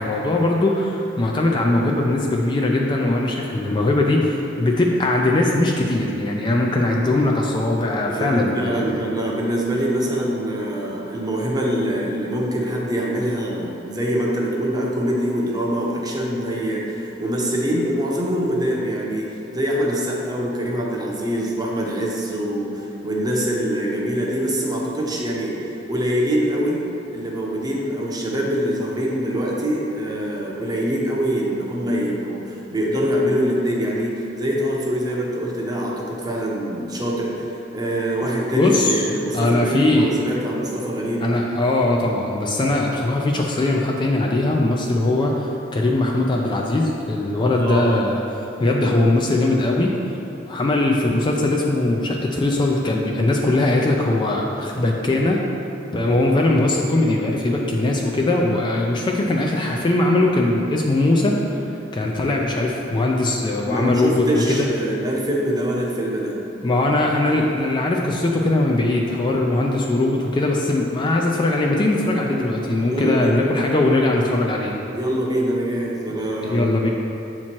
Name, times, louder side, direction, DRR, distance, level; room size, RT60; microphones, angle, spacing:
voice 1, 0.0-8.8 38.5-39.0 39.3-40.1 41.2-48.2 48.6-50.2 50.5-55.4 55.9-64.7 66.6-74.7 76.5-76.9, left 2 dB, 25° left, 0 dB, 0.3 m, -20 dB
voice 2, 8.1-26.8 27.1-37.5 37.7-41.2 47.4-48.0 63.7-66.3 72.9-73.5 74.9-76.7, equal, 20° right, -3 dB, 0.7 m, -24 dB
7.2 x 2.9 x 4.4 m, 2.9 s
head